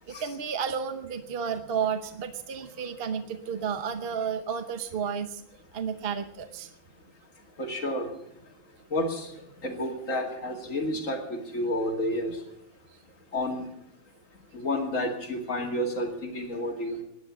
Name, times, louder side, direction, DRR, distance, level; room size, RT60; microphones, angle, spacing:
voice 1, 0.1-5.4 5.7-6.7, right 7 dB, 50° right, 9 dB, 1.1 m, -32 dB
voice 2, 7.6-8.1 8.9-9.3 9.6-12.4 13.3-13.6 14.5-17.0, left 1 dB, 85° left, 3 dB, 2.7 m, -30 dB
17.5 x 10.5 x 7.3 m, 0.80 s
omnidirectional pair, 1.3 m